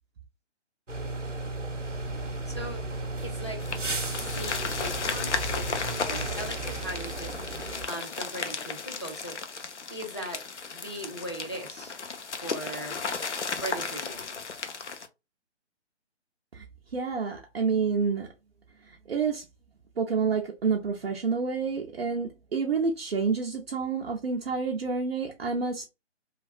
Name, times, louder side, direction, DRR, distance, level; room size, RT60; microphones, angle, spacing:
sound 1, 0.9-7.9, right 2 dB, 90° right, 0.9 m, -34 dB
voice 1, 2.5-2.9 3.2-3.7 4.2-9.4 9.9-10.4 10.7-11.9 12.4-13.0 13.6-14.2, right 1 dB, 25° left, 0.4 m, -39 dB
sound 2, 3.6-15.1, left 5 dB, 75° left, 0.6 m, -35 dB
voice 2, 16.9-18.3 18.8-19.5 20.0-25.9, right 5 dB, 60° right, 0.6 m, -28 dB
3.3 x 2.3 x 2.2 m
figure-of-eight pair, 140°, 35 cm